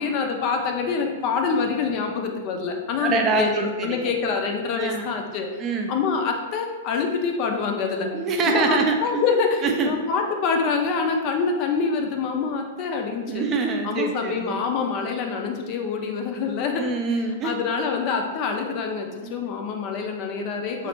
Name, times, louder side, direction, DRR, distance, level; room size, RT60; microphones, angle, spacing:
voice 1, 0.0-5.5 5.9-8.1 8.5-13.4 13.8-16.8 17.4-20.9, left 5 dB, 45° left, 3 dB, 0.4 m, -26 dB
voice 2, 3.0-4.1 4.8-5.1 5.6-6.0 8.1-9.0 9.6-9.9 13.3-14.6 16.8-17.6 19.2-19.3, right 4 dB, 30° right, 3 dB, 0.4 m, -24 dB
3.1 x 2.0 x 3.0 m, 1.3 s
hypercardioid pair, 115°, 0 cm